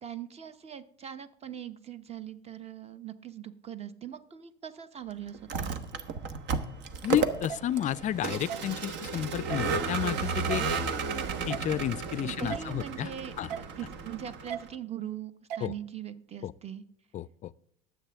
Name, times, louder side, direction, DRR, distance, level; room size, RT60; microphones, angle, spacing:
voice 1, 0.0-5.8 10.6-10.7 12.2-16.8, right 10 dB, 30° right, 1.0 m, -41 dB
Vehicle, 5.3-14.7, right 5 dB, 60° right, 1.1 m, -33 dB
voice 2, 7.0-10.7 11.5-13.1 13.4-13.5 15.6-15.7 16.4-16.5 17.1-17.5, left 11 dB, 35° left, 0.4 m, -31 dB
sound 1, 7.5-7.6 8.5-8.6 9.5-9.7 10.5-10.6 11.5-11.7 12.5-12.6 13.5-13.7 14.5-14.6 15.5-15.7, right 9 dB, 90° right, 0.5 m, -36 dB
21.5 x 7.8 x 3.5 m
supercardioid pair, 95°, 21 cm